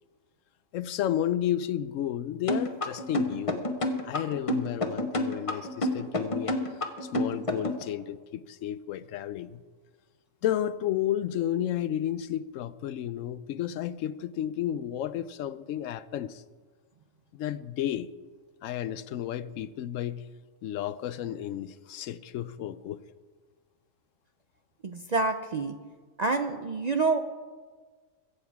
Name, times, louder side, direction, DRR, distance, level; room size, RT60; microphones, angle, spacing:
voice 1, 0.7-3.6 4.0-6.6 7.0-9.6 10.4-16.4 17.3-18.1 18.6-20.2 20.6-23.0, left 11 dB, 70° left, 0.9 m, -32 dB
sound 1, 2.5-7.8, left 1 dB, 25° left, 0.9 m, -28 dB
voice 2, 24.8-25.7 26.2-27.2, right 3 dB, 55° right, 0.4 m, -27 dB
22.0 x 8.1 x 4.7 m
omnidirectional pair, 1.4 m